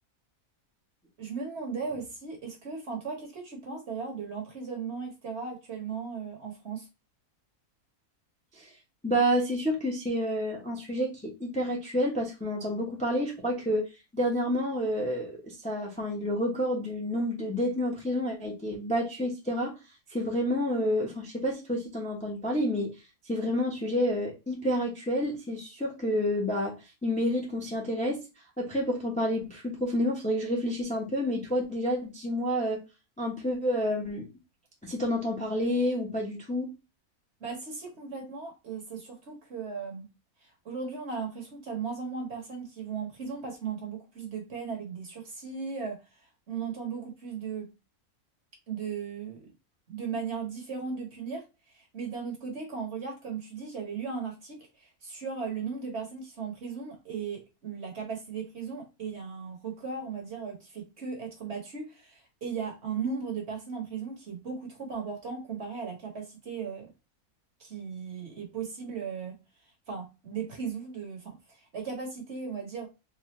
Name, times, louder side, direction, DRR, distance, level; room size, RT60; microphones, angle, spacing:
voice 1, 1.2-6.9 37.4-40.1 40.4-47.7 48.7-49.5 49.9-66.9 67.6-69.4 69.9-72.9, right 5 dB, 50° right, 1 dB, 1.3 m, -37 dB
voice 2, 9.0-13.8 14.1-19.7 20.1-22.9 23.3-26.7 27.0-28.2 28.6-32.8 33.2-34.3 34.8-36.7, equal, 5° left, -2 dB, 0.8 m, -29 dB
4.0 x 2.4 x 3.0 m, 0.26 s
omnidirectional pair, 1.5 m